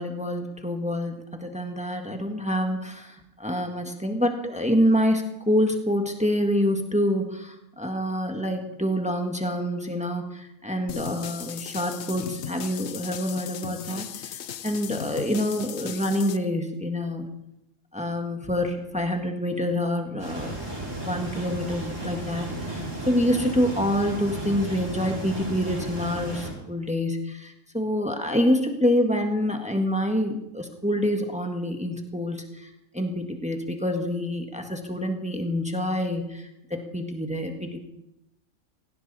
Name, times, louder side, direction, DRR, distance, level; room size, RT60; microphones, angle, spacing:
voice 1, 0.0-17.3 17.9-20.6 21.0-37.9, equal, 5° right, 4 dB, 1.6 m, -27 dB
sound 1, 10.9-16.4, left 9 dB, 65° left, 0.9 m, -37 dB
sound 2, 20.2-26.5, right 1 dB, 70° right, 6.6 m, -34 dB
18.0 x 16.5 x 4.2 m, 0.86 s
omnidirectional pair, 1.3 m